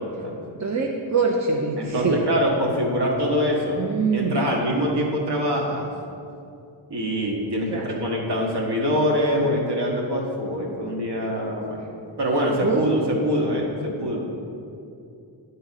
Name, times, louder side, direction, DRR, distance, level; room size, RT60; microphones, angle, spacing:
voice 1, 0.0-0.4 1.8-3.8 4.1-5.9 6.9-11.8 12.2-14.2, equal, 55° right, -1 dB, 1.5 m, -24 dB
voice 2, 0.6-2.2 3.8-4.4 7.7-7.9 12.6-12.9, right 4 dB, 35° right, 0 dB, 0.7 m, -24 dB
9.3 x 3.9 x 4.1 m, 2.6 s
cardioid pair, 65°, 48 cm